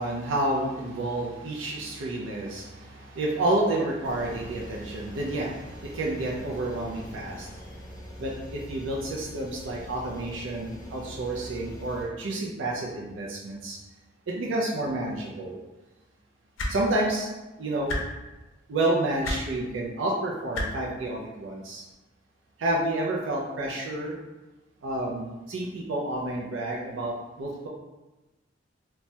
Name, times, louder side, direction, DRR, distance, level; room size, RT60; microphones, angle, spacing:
voice 1, 0.0-7.7 8.2-13.8 14.3-15.6 16.7-17.3 17.6-18.0 18.7-21.8 22.6-24.1 24.8-27.7, right 1 dB, 75° right, -2 dB, 0.4 m, -30 dB
sound 1, 4.0-12.0, equal, 15° left, 0.6 m, -43 dB
sound 2, 16.6-16.7 17.9-18.0 19.2-19.4 20.5-20.7 21.9-22.0, left 1 dB, 85° left, 0.5 m, -28 dB
3.1 x 2.2 x 2.7 m, 1.1 s
head